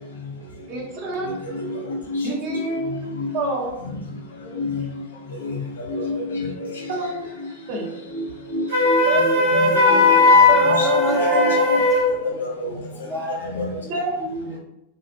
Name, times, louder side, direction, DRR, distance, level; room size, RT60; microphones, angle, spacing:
voice 1, 0.7-1.3 2.2-3.7 4.4-4.7 6.9-7.2 7.7-7.9 9.0-9.2 10.5-12.2 13.9-14.2, right 3 dB, 45° right, -2 dB, 0.7 m, -28 dB
voice 2, 5.9-6.4 8.1-8.2 8.5-9.4 9.8-11.8 12.6-12.7 13.5-13.7, left 1 dB, 65° left, -2 dB, 0.7 m, -27 dB
Wind instrument woodwind instrument, 8.7-12.1, left 3 dB, 70° right, 0.9 m, -17 dB
voice 3, 9.5-10.4 10.7-11.6 12.3-12.4 13.1-13.9 14.2-14.6, equal, 5° right, 0 dB, 0.4 m, -30 dB
2.4 x 2.0 x 2.5 m, 0.85 s
figure-of-eight pair, 90°, 0 cm